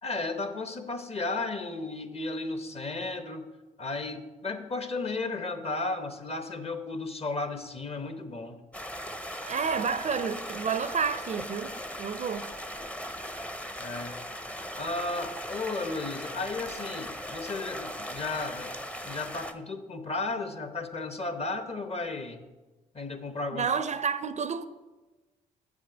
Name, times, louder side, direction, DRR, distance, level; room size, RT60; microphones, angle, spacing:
voice 1, 0.0-3.4 3.8-8.6 13.8-14.2 14.8-18.7 19.1-22.4 22.9-23.7, left 3 dB, 35° left, 1.0 m, -34 dB
Stream, 8.7-19.5, equal, 5° left, 0.6 m, -39 dB
voice 2, 9.5-12.5 23.5-24.7, right 6 dB, 40° right, 0.5 m, -30 dB
7.2 x 6.1 x 5.0 m
supercardioid pair, 55°, 18 cm